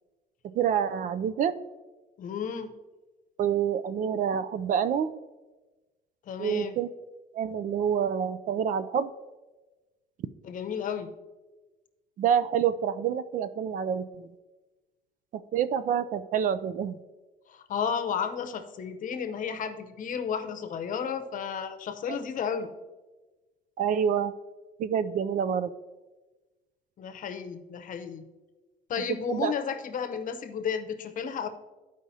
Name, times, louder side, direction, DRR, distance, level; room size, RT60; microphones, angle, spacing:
voice 1, 0.4-1.5 3.4-5.1 6.4-6.9 7.3-9.1 12.2-14.3 15.3-17.0 23.8-24.3 24.8-25.7 29.3-29.5, right 8 dB, 50° right, 14 dB, 0.4 m, -27 dB
voice 2, 2.2-2.7 6.3-6.8 10.4-11.1 17.5-22.7 27.0-28.2 28.9-31.5, left 7 dB, 50° left, 8 dB, 0.8 m, -33 dB
13.5 x 4.9 x 2.7 m, 1.2 s
cardioid pair, 110°, 17 cm